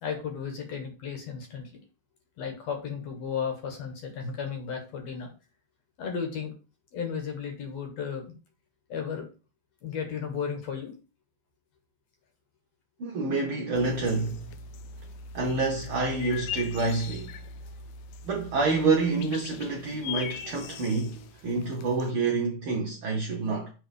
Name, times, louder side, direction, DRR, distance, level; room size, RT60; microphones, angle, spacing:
voice 1, 0.0-1.7 2.4-5.3 6.0-6.5 6.9-8.3 8.9-9.3 9.8-10.9, left 6 dB, 60° left, 2.5 m, -34 dB
voice 2, 13.0-14.4 15.3-17.3 18.2-23.7, right 3 dB, 70° right, 1.3 m, -28 dB
sound 1, 13.7-22.1, left 6 dB, 80° left, 1.7 m, -41 dB
6.5 x 3.8 x 5.2 m
omnidirectional pair, 3.5 m